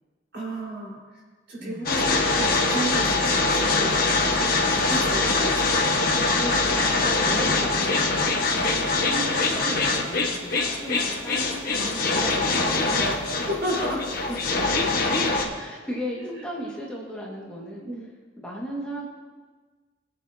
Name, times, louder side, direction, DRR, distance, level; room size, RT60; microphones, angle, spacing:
voice 1, 0.3-1.0 1.5-4.0 4.7-5.9 7.3-7.7 12.7-14.0 14.3-14.5 16.2-16.4 17.8-18.1, equal, 60° right, -4 dB, 4.2 m, -33 dB
sound 1, 1.9-15.5, left 3 dB, 50° left, 1.3 m, -23 dB
voice 2, 6.4-13.0 15.6-17.9 18.4-19.1, equal, 5° left, -5 dB, 1.7 m, -36 dB
22.5 x 8.1 x 2.7 m, 1.4 s
head